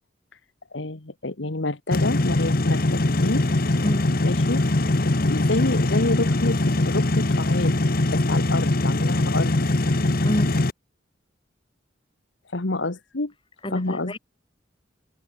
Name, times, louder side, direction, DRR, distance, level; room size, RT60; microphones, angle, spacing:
voice 1, 0.7-3.5 4.2-4.6 5.0-7.7 8.1-9.6 12.5-13.3 13.7-14.2, left 2 dB, 75° left, 1.5 m, -28 dB
sound 1, 1.9-10.7, left 2 dB, 50° left, 1.2 m, -22 dB
voice 2, 3.8-4.2 10.2-10.5 13.6-14.2, equal, 25° left, 5.7 m, -29 dB
head